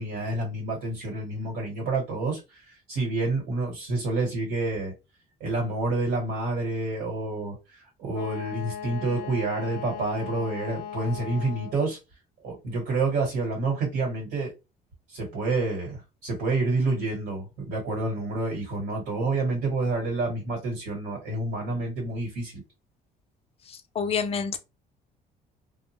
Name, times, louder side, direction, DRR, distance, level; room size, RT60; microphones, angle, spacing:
voice 1, 0.0-4.9 5.4-12.0 12.4-14.5 15.1-22.6, right 2 dB, 90° right, 1.5 m, -28 dB
Wind instrument woodwind instrument, 8.1-11.9, left 8 dB, 85° left, 0.7 m, -38 dB
voice 2, 23.9-24.6, left 6 dB, 35° left, 0.5 m, -27 dB
2.4 x 2.1 x 3.0 m
cardioid pair, 110°, 17 cm